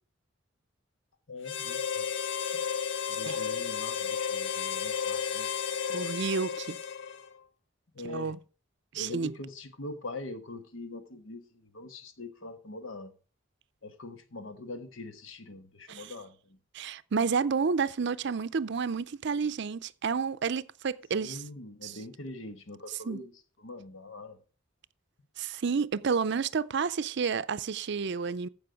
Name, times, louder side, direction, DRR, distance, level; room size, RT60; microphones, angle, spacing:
voice 1, 1.3-2.1 3.1-5.6 7.9-8.4 8.9-13.1 13.8-16.6 21.1-23.3 23.6-24.4, left 2 dB, 80° left, 1.3 m, -43 dB
Harmonica, 1.4-7.4, left 7 dB, 65° left, 0.8 m, -33 dB
voice 2, 5.9-6.8 8.0-8.4 8.9-9.3 15.9-16.1 16.7-21.4 21.8-22.0 22.9-23.2 25.4-28.5, right 5 dB, 60° right, 0.5 m, -30 dB
14.5 x 5.4 x 5.1 m
head